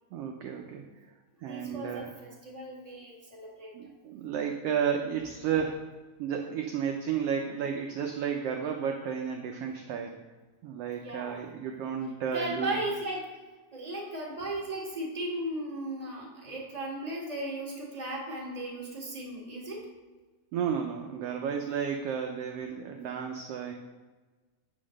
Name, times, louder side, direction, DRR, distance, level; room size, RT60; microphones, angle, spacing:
voice 1, 0.1-1.1 1.4-2.1 3.7-5.9 6.2-10.1 10.6-12.8 20.5-23.7, right 7 dB, 85° right, 2 dB, 1.3 m, -32 dB
voice 2, 1.5-3.7 11.0-11.4 12.3-13.3 13.7-19.8, right 1 dB, 20° right, -4 dB, 1.2 m, -36 dB
8.5 x 3.9 x 6.3 m, 1.3 s
omnidirectional pair, 3.5 m